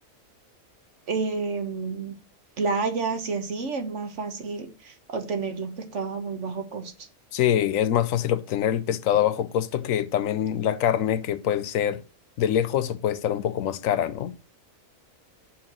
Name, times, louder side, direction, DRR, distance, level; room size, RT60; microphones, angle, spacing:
voice 1, 1.1-2.1 2.6-6.9, right 4 dB, 60° right, 1.5 m, -30 dB
voice 2, 7.3-12.0 12.4-14.3, left 10 dB, 75° left, 1.0 m, -24 dB
5.9 x 5.8 x 6.3 m
omnidirectional pair, 1.4 m